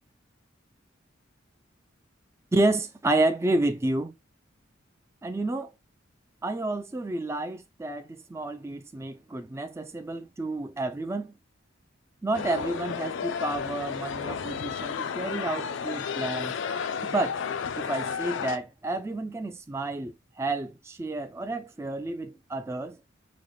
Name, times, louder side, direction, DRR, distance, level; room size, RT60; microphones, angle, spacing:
voice 1, 2.5-4.1 5.2-5.7 6.4-11.3 12.2-16.6 17.1-17.4 17.8-23.0, right 2 dB, 15° right, 0.3 m, -30 dB
sound 1, 12.3-18.6, left 6 dB, 65° left, 0.4 m, -32 dB
5.0 x 2.2 x 3.3 m
head